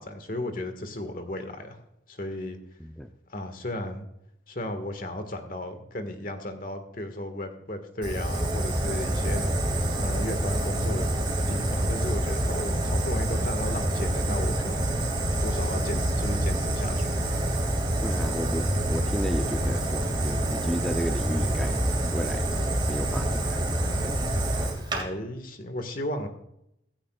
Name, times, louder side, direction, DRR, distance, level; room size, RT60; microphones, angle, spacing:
voice 1, 0.0-1.8 2.1-2.6 3.3-4.1 4.5-9.5 10.0-11.1 11.5-15.0 15.4-17.2 24.9-26.3, left 1 dB, 50° left, 7 dB, 1.8 m, -34 dB
Fire, 8.0-25.0, right 1 dB, 25° right, 2.3 m, -27 dB
voice 2, 18.0-22.5 22.9-23.7 24.0-24.1, equal, ahead, 4 dB, 0.6 m, -33 dB
15.5 x 15.0 x 2.4 m, 0.79 s
head